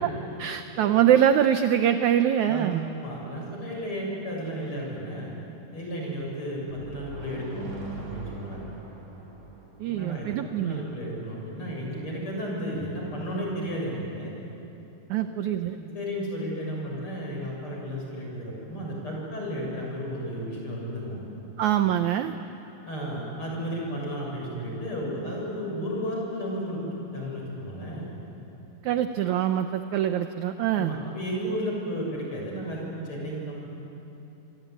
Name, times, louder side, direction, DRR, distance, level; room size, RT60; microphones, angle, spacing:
voice 1, 0.4-2.8 9.8-10.8 15.1-15.8 21.6-22.4 28.8-31.0, right 10 dB, 75° right, 8 dB, 1.7 m, -24 dB
voice 2, 2.5-5.3 5.7-8.7 9.8-14.3 15.1-15.3 15.8-21.2 22.9-28.1 30.7-33.7, equal, 35° left, -2 dB, 7.9 m, -33 dB
sound 1, 6.7-10.4, right 2 dB, 45° right, 4.6 m, -40 dB
26.5 x 24.0 x 9.3 m, 3.0 s
omnidirectional pair, 4.2 m